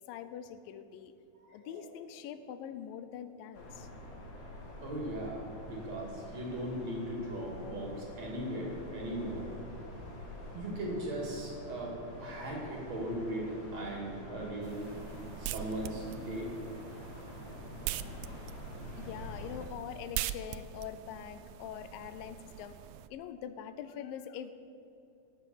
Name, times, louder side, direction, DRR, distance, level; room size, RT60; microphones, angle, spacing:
voice 1, 0.1-1.1 1.5-3.9 17.9-18.3 19.0-22.8 23.1-24.5, left 9 dB, 80° left, 11 dB, 2.3 m, -44 dB
voice 2, 1.3-1.9 4.8-10.1 10.5-14.9 15.4-16.6, right 1 dB, 50° right, -1 dB, 3.9 m, -38 dB
sound 1, 3.5-19.7, left 1 dB, 50° left, 3.9 m, -47 dB
sound 2, 14.6-23.1, right 13 dB, 85° right, 1.7 m, -43 dB
18.5 x 8.0 x 7.3 m, 2.7 s
omnidirectional pair, 4.0 m